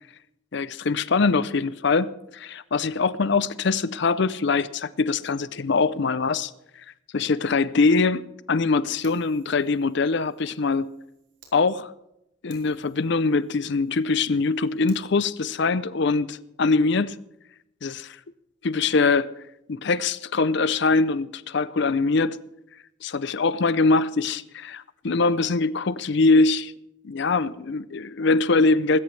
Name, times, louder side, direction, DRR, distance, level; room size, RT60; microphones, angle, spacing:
voice 1, 0.5-6.5 7.1-8.2 8.5-10.9 11.5-11.9 12.4-17.2 17.8-18.1 18.6-19.3 19.7-22.4 23.0-26.7 27.0-29.0, left 3 dB, 60° left, 0.6 m, -23 dB
Fire, 9.0-11.5 12.0-12.1 12.5-15.0, right 5 dB, 60° right, 4.6 m, -57 dB
19.5 x 16.5 x 3.3 m
head